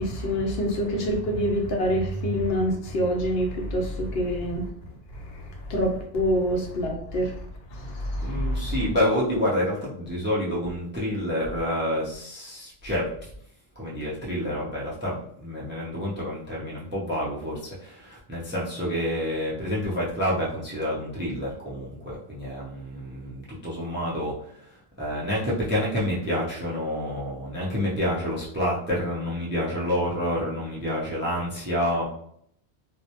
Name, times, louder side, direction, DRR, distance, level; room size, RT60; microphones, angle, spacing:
voice 1, 0.0-4.7 5.2-7.5 7.7-8.7, equal, 70° left, 1 dB, 0.8 m, -26 dB
voice 2, 8.2-13.3 13.8-32.0, equal, 20° right, -5 dB, 0.3 m, -28 dB
2.2 x 2.0 x 2.8 m, 0.67 s
omnidirectional pair, 1.1 m